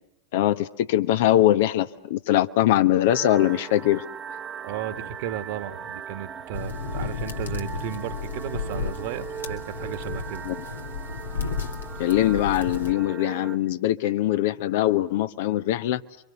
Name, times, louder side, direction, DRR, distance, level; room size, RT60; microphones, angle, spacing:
voice 1, 0.3-4.0 10.4-10.6 12.0-16.0, left 13 dB, 50° left, 11 dB, 1.1 m, -22 dB
sound 1, 3.1-13.6, right 7 dB, 25° right, 1.2 m, -39 dB
voice 2, 4.6-10.4, right 11 dB, 50° right, 9 dB, 1.8 m, -34 dB
sound 2, 6.5-12.9, left 5 dB, 70° left, 2.2 m, -33 dB
29.0 x 24.5 x 6.8 m, 0.83 s
figure-of-eight pair, 90°, 0 cm